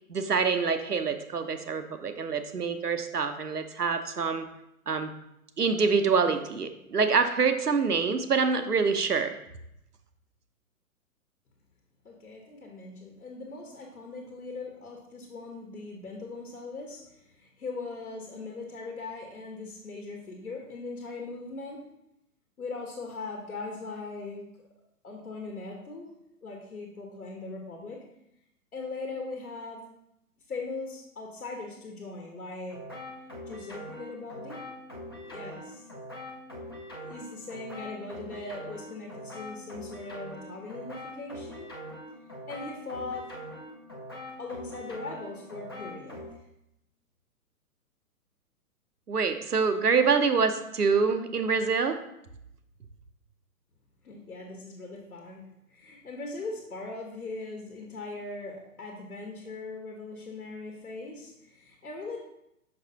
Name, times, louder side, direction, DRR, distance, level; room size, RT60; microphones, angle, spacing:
voice 1, 0.1-4.4 4.9-5.1 5.6-9.4 49.1-52.0, right 5 dB, 90° right, 8 dB, 0.8 m, -26 dB
voice 2, 12.0-21.8 22.6-24.4 25.0-26.1 26.4-28.0 28.7-29.8 30.5-32.8 33.5-34.6 35.2-35.9 37.0-41.7 42.5-43.3 44.4-46.5 54.0-55.4 55.7-62.2, left 3 dB, 70° left, 0 dB, 1.4 m, -40 dB
sound 1, 32.7-46.3, equal, 20° left, 0.3 m, -43 dB
6.4 x 5.5 x 2.8 m, 0.82 s
figure-of-eight pair, 120°, 45 cm